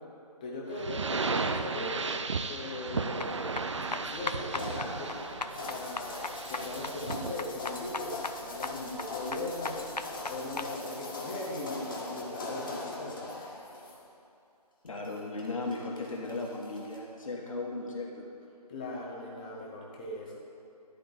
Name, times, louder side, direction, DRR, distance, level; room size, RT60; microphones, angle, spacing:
voice 1, 0.4-2.1 2.5-3.5 3.7-5.1 5.7-6.1 6.5-8.2 8.4-9.8 10.3-13.2 18.7-20.4, left 2 dB, 15° left, -3 dB, 0.8 m, -39 dB
sound 1, 0.7-7.4, right 4 dB, 45° right, 0.4 m, -35 dB
sound 2, 3.2-10.7, left 3 dB, 90° left, 0.5 m, -39 dB
sound 3, 4.5-14.0 14.9-17.0, left 2 dB, 30° left, 1.6 m, -41 dB
voice 2, 14.8-18.2, left 2 dB, 55° left, -1 dB, 1.4 m, -36 dB
12.0 x 5.1 x 7.1 m, 2.6 s
figure-of-eight pair, 150°, 20 cm